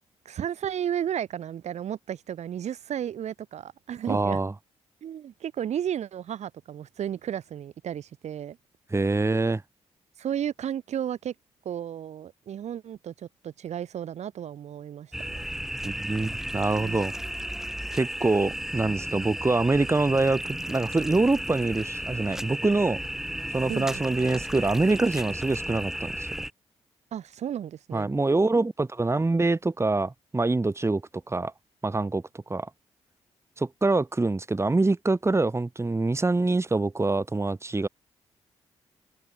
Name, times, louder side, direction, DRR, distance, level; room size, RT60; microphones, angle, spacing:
voice 1, 0.2-4.4 5.0-8.6 10.2-11.3 11.6-15.4 16.8-17.0 23.7-23.9 27.1-28.1, right 9 dB, 70° right, 4.5 m, -33 dB
voice 2, 4.1-4.5 8.9-9.6 15.8-17.1 17.9-23.0 23.5-26.3 27.9-31.0 31.3-31.5 31.8-32.2 32.5-32.7 33.6-37.9, right 3 dB, 20° right, 2.5 m, -25 dB
sound 1, 15.1-26.5, equal, 5° right, 1.7 m, -34 dB
supercardioid pair, 60°, 12 cm